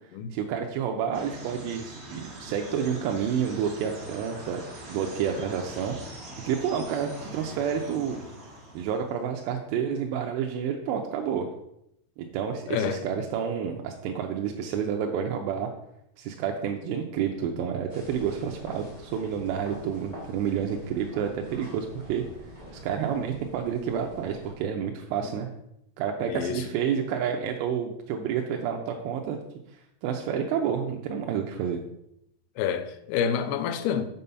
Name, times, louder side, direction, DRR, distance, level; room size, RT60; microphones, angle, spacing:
voice 1, 0.3-6.1 6.4-8.2 8.7-11.5 12.2-15.7 16.2-22.2 22.8-25.5 26.0-29.4 30.0-31.8, right 7 dB, 80° right, 2 dB, 2.6 m, -29 dB
sound 1, 1.1-9.2, right 1 dB, 45° right, 1.7 m, -43 dB
voice 2, 12.7-13.0 26.3-26.6 32.6-34.0, left 8 dB, 80° left, 8 dB, 2.3 m, -28 dB
sound 2, 17.9-24.5, equal, 15° left, 2.0 m, -45 dB
7.7 x 5.4 x 5.6 m, 0.80 s
omnidirectional pair, 5.5 m